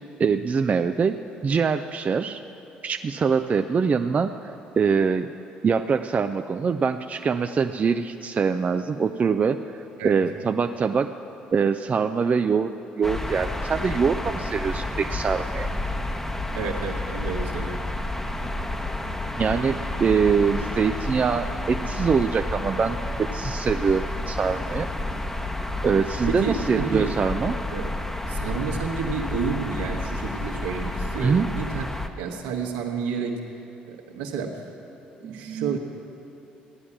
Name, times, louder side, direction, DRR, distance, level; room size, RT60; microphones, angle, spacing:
voice 1, 0.2-1.2 1.4-2.4 2.8-4.3 4.7-5.3 5.6-9.6 10.0-11.1 11.5-12.7 13.0-15.7 19.4-24.9 25.8-27.6 31.2-31.5 35.2-35.8, right 5 dB, 35° right, 8 dB, 0.5 m, -23 dB
sound 1, 13.0-32.1, left 2 dB, 10° left, 1.0 m, -30 dB
voice 2, 16.5-17.9 20.6-20.7 26.3-27.1 27.7-27.9 28.2-31.9 32.2-33.4 33.9-34.6 35.2-35.8, right 5 dB, 70° right, 1 dB, 1.5 m, -30 dB
15.5 x 11.0 x 7.3 m, 2.8 s
figure-of-eight pair, 50°, 5 cm